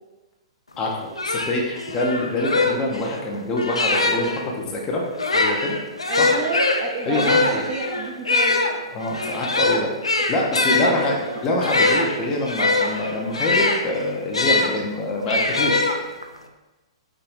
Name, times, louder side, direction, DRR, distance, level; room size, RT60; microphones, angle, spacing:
sound 1, 0.8-0.9 1.1-4.4 5.1-14.7 15.3-16.4, left 3 dB, 90° left, 0.4 m, -22 dB
voice 1, 0.8-5.0 5.3-5.8 6.2-6.3 7.1-7.6 8.9-9.9 10.3-11.2 11.4-15.9, left 1 dB, 25° left, -2 dB, 0.8 m, -25 dB
voice 2, 6.1-8.7 10.3-10.4 10.7-11.1, right 4 dB, 35° right, 0 dB, 0.4 m, -30 dB
5.7 x 2.7 x 2.6 m, 1.1 s
figure-of-eight pair, 115°, 3 cm